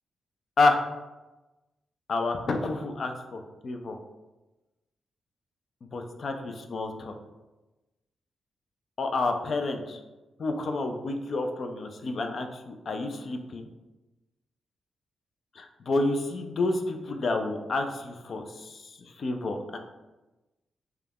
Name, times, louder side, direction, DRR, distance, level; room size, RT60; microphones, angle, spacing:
voice 1, 2.1-4.0 5.9-7.1 9.0-10.0 10.4-13.7 15.6-19.8, left 3 dB, 55° left, 5 dB, 0.3 m, -29 dB
2.3 x 2.1 x 3.3 m, 1.1 s
cardioid pair, 80°, 0 cm